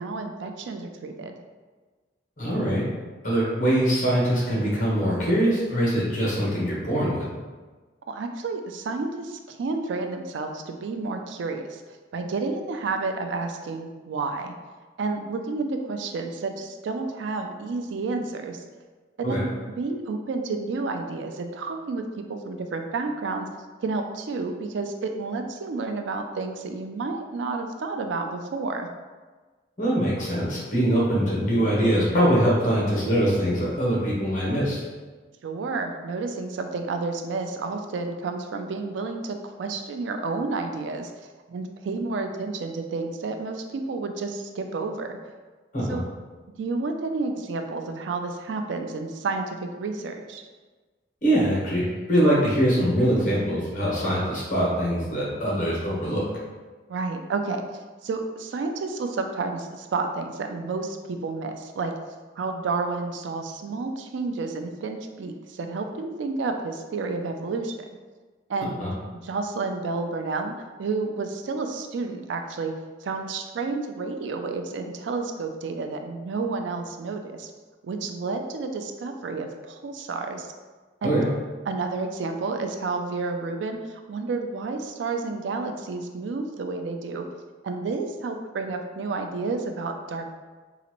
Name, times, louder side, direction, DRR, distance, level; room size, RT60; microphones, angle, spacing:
voice 1, 0.0-1.3 8.1-11.8 12.1-14.6 15.0-18.6 19.2-19.5 19.8-23.5 23.8-28.9 35.4-45.2 45.9-46.1 46.6-50.4 56.9-67.9 68.5-68.7 69.2-70.5 70.8-72.7 73.0-77.5 77.8-80.5 81.0-81.1 81.7-87.3 87.6-90.3, right 3 dB, 80° right, 5 dB, 0.4 m, -30 dB
voice 2, 2.4-2.8 3.2-7.3 19.2-19.4 29.8-34.8 45.7-46.0 51.2-56.3 68.8-68.9 81.0-81.3, equal, 45° left, -6 dB, 1.2 m, -23 dB
3.9 x 2.5 x 2.9 m, 1.3 s
head